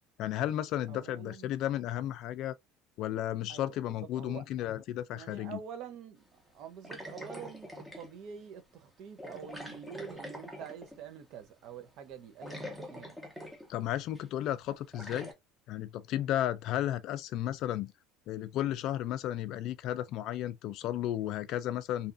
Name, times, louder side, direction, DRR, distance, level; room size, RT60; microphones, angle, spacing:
voice 1, 0.2-2.6 3.0-5.6 13.7-15.3 15.7-17.9 18.3-22.1, left 12 dB, 55° left, 0.3 m, -33 dB
voice 2, 0.9-1.6 3.5-4.4 5.1-13.2, right 8 dB, 55° right, 0.6 m, -47 dB
sound 1, 6.8-8.2 9.2-11.1 12.1-12.2 12.4-13.8 14.1-14.2 14.9-15.3, equal, 5° right, 0.7 m, -44 dB
2.7 x 2.4 x 2.5 m
cardioid pair, 145°, 0 cm